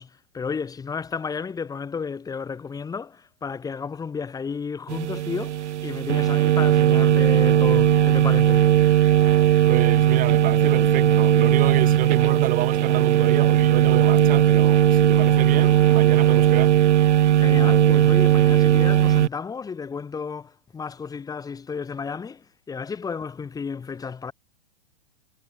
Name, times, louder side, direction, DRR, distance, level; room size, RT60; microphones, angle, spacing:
voice 1, 0.0-8.7 17.3-24.3, left 5 dB, 10° left, 2.9 m, -32 dB
sound 1, 4.9-19.3, right 11 dB, 80° right, 1.4 m, -18 dB
voice 2, 9.6-16.8, right 15 dB, 25° right, 2.0 m, -29 dB
hypercardioid pair, 150°, 34 cm